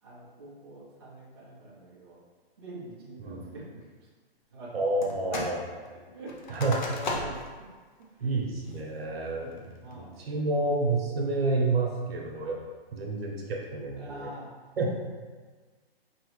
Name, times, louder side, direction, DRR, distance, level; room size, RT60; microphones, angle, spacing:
voice 1, 0.0-2.2 2.6-3.6 4.5-4.7 5.3-5.4 6.1-7.5 8.0-8.4 9.1-10.4 14.0-14.5, right 1 dB, 25° right, -8 dB, 0.8 m, -45 dB
voice 2, 4.7-5.6 6.5-6.8 8.2-9.6 9.9-12.6 12.9-14.3 14.8-14.9, right 3 dB, 75° right, -1 dB, 1.1 m, -29 dB
sound 1, 5.0-5.6 5.9-7.6 8.0-8.1 8.6-9.0 9.5-9.9, left 2 dB, 50° left, 0.6 m, -36 dB
4.5 x 3.0 x 3.1 m, 1.4 s
hypercardioid pair, 175°, 31 cm